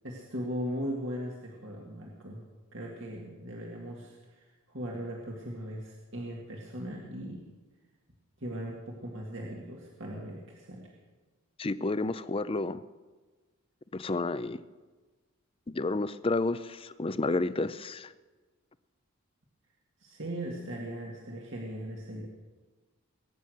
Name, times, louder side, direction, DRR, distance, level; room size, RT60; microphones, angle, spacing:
voice 1, 0.0-2.4 2.7-7.4 8.4-10.9 20.0-22.3, equal, 60° right, -2 dB, 2.0 m, -38 dB
voice 2, 11.6-12.8 13.9-14.6 15.7-18.1, left 2 dB, 25° left, 14 dB, 0.5 m, -30 dB
21.5 x 9.5 x 6.5 m, 1.3 s
head